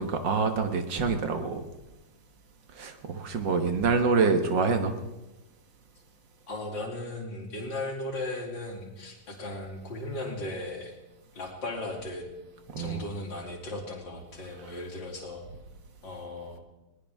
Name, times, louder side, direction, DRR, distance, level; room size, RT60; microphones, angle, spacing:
voice 1, 0.0-1.6 2.7-5.0 12.7-13.1, right 4 dB, 75° right, 6 dB, 2.1 m, -26 dB
voice 2, 6.5-10.9 11.3-12.3 12.8-15.4 16.0-16.6, left 2 dB, 80° left, 0 dB, 3.5 m, -36 dB
21.0 x 18.5 x 3.6 m, 1.0 s
omnidirectional pair, 2.0 m